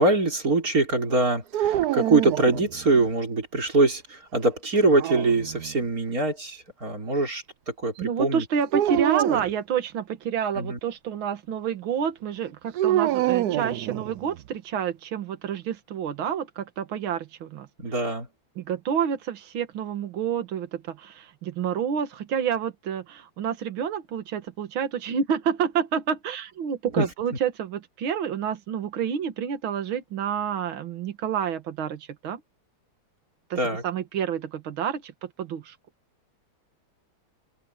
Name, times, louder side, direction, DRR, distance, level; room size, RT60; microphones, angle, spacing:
voice 1, 0.0-7.4 7.8-8.4 10.6-10.8 17.8-18.3 27.0-27.1 33.6-33.8, right 3 dB, 40° right, 4.9 m, -23 dB
sound 1, 1.5-3.1 4.7-5.9 8.7-9.5 12.8-14.4, right 13 dB, 85° right, 0.8 m, -26 dB
voice 2, 8.0-17.7 18.6-32.4 33.5-35.8, right 8 dB, 70° right, 2.3 m, -29 dB
omnidirectional pair, 2.3 m